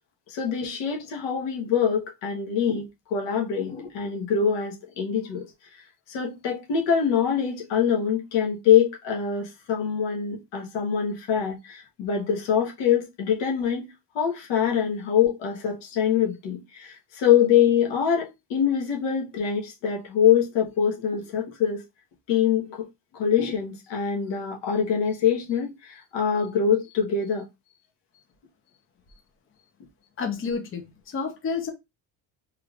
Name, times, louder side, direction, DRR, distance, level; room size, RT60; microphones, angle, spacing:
voice 1, 0.3-5.4 6.1-21.8 22.3-22.9 23.1-27.4, left 8 dB, 80° left, 1.3 m, -24 dB
voice 2, 30.2-31.7, left 5 dB, 30° left, 0.8 m, -30 dB
3.3 x 3.3 x 2.4 m
cardioid pair, 110°, 43 cm